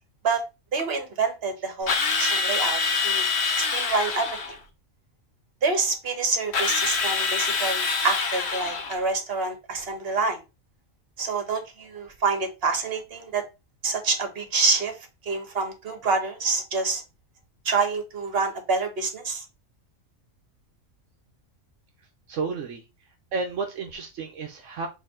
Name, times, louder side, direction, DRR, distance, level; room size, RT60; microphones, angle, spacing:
voice 1, 0.7-3.2 3.6-4.3 5.6-10.4 11.2-13.4 13.8-15.0 15.3-17.0 17.6-19.4, right 4 dB, 55° right, 6 dB, 1.3 m, -27 dB
Drill, 1.9-4.6 6.5-9.0, left 5 dB, 60° left, 1.1 m, -25 dB
voice 2, 22.0-22.8 23.3-24.9, right 4 dB, 75° right, 3 dB, 1.0 m, -32 dB
4.4 x 3.1 x 3.6 m, 0.26 s
omnidirectional pair, 1.3 m